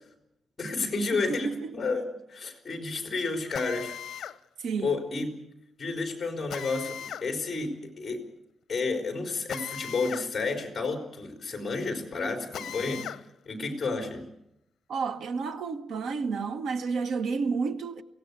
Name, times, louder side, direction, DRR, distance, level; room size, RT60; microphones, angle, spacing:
voice 1, 0.6-3.9 4.8-5.3 5.8-8.2 8.7-13.1 13.5-14.2, left 3 dB, 25° left, 4.0 m, -31 dB
voice 2, 1.1-1.7 4.6-5.0 14.9-18.0, right 5 dB, 90° right, 1.3 m, -30 dB
Drill, 3.5-4.4 6.5-7.3 9.5-10.3 10.6-10.7 12.5-13.2, left 9 dB, 80° left, 0.8 m, -38 dB
23.5 x 17.0 x 8.2 m
wide cardioid pair, 175°, 0 cm